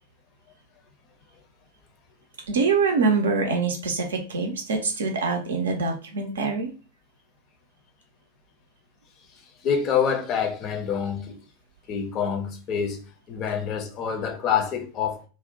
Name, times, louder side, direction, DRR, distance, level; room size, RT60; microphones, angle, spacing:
voice 1, 2.5-6.7, right 4 dB, 65° right, 0.5 m, -24 dB
voice 2, 9.6-11.4 11.9-13.0 13.3-15.3, left 7 dB, 35° left, 0.5 m, -26 dB
2.5 x 2.1 x 2.7 m
figure-of-eight pair, 90°, 0 cm